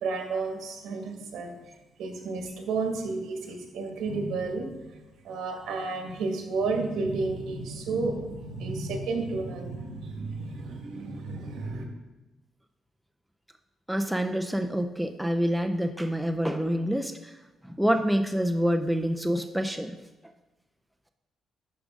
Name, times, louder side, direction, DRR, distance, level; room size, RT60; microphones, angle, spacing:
voice 1, 0.0-1.5 2.0-4.9 5.2-11.8, right 3 dB, 75° right, 2 dB, 1.6 m, -32 dB
voice 2, 13.9-17.3 17.6-20.0, equal, 5° right, 6 dB, 0.5 m, -27 dB
11.5 x 5.0 x 3.7 m, 1.1 s
cardioid pair, 90°, 0 cm